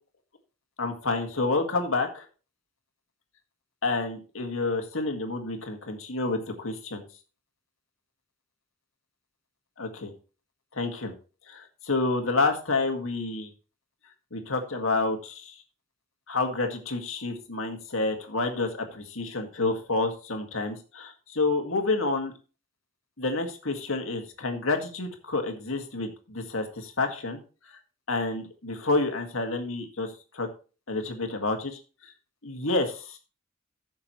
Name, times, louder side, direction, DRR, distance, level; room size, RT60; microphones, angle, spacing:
voice 1, 0.8-2.2 3.8-7.1 9.8-10.1 10.7-11.1 11.5-13.5 14.3-15.5 16.3-22.3 23.2-27.4 28.1-30.1 30.3-30.5 30.9-31.8 32.4-33.2, left 3 dB, 75° left, 4 dB, 1.9 m, -29 dB
14.5 x 6.7 x 3.1 m, 0.35 s
head